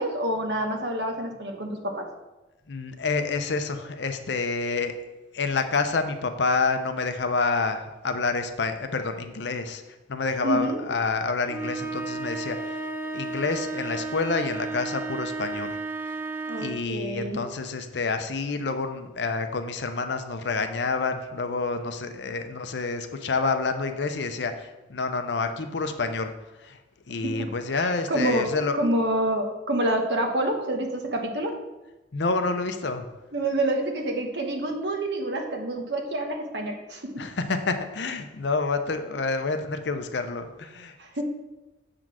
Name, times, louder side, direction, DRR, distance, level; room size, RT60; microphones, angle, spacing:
voice 1, 0.0-2.1 10.4-10.9 16.5-17.4 27.2-28.5 28.8-31.6 33.3-37.2 41.0-41.2, right 1 dB, 65° right, 3 dB, 1.1 m, -28 dB
voice 2, 2.7-4.9 5.3-9.8 10.1-12.8 13.1-15.8 16.0-16.1 16.5-26.3 26.6-26.8 27.1-28.8 32.1-33.1 37.2-41.0, left 4 dB, 65° left, 7 dB, 0.6 m, -28 dB
sound 1, 11.5-16.9, right 3 dB, 10° right, 0.3 m, -33 dB
7.5 x 3.8 x 6.1 m, 1.1 s
head